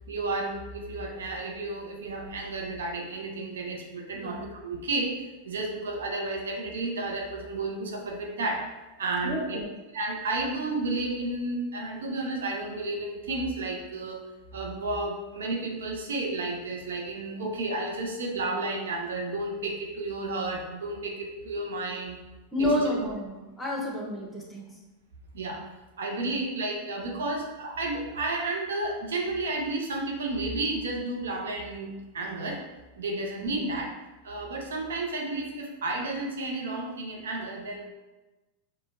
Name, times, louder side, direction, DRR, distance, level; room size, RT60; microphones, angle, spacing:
voice 1, 0.1-5.1 5.4-8.6 9.0-9.6 9.9-14.2 14.5-22.2 22.6-22.9 25.3-25.6 26.0-32.6 33.0-33.9 34.2-37.8, right 2 dB, 75° right, 0 dB, 0.6 m, -32 dB
voice 2, 4.1-4.4 9.2-9.7 22.5-24.6 26.2-26.3 33.4-33.6, left 1 dB, 10° left, -2 dB, 0.9 m, -30 dB
4.9 x 2.2 x 2.5 m, 1.1 s
hypercardioid pair, 90°, 0 cm